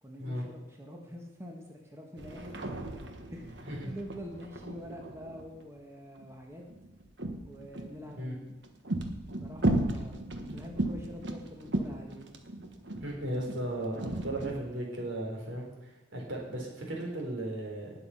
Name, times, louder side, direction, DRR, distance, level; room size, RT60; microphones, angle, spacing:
voice 1, 0.0-2.7 3.3-6.6 7.4-8.5 9.4-12.3, equal, 15° right, 1 dB, 1.5 m, -46 dB
sound 1, 2.2-5.6 6.1-8.0 8.5-14.5, right 1 dB, 65° right, 1.3 m, -35 dB
voice 2, 13.0-17.9, right 1 dB, 85° right, -1 dB, 3.9 m, -36 dB
19.0 x 7.0 x 5.7 m, 1.1 s
head